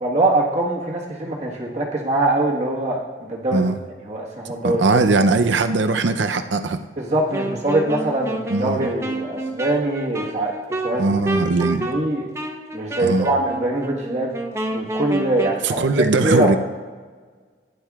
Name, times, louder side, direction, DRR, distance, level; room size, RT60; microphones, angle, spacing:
voice 1, 0.0-3.7 4.0-4.8 7.0-10.5 10.8-11.1 11.6-12.3 12.7-14.3 14.7-16.6, right 2 dB, 35° right, -2 dB, 1.4 m, -23 dB
voice 2, 4.6-6.8 8.5-8.9 11.0-11.9 13.0-13.3 15.6-16.6, right 3 dB, 80° right, 9 dB, 0.6 m, -20 dB
Wind instrument woodwind instrument, 7.3-15.6, right 2 dB, 15° right, 0.7 m, -29 dB
16.0 x 10.5 x 2.4 m, 1.5 s
head